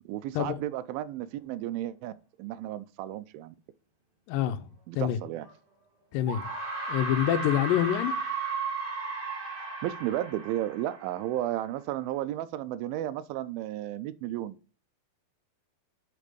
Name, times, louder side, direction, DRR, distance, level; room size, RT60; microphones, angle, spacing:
voice 1, 0.1-3.6 4.9-5.5 9.8-14.6, right 13 dB, 85° right, 2.3 m, -33 dB
voice 2, 4.3-5.2 6.1-6.4 6.9-8.2, left 11 dB, 80° left, 2.3 m, -27 dB
sound 1, 5.4-5.5 6.3-11.5, right 3 dB, 25° right, 1.3 m, -35 dB
8.2 x 4.3 x 5.1 m
omnidirectional pair, 4.3 m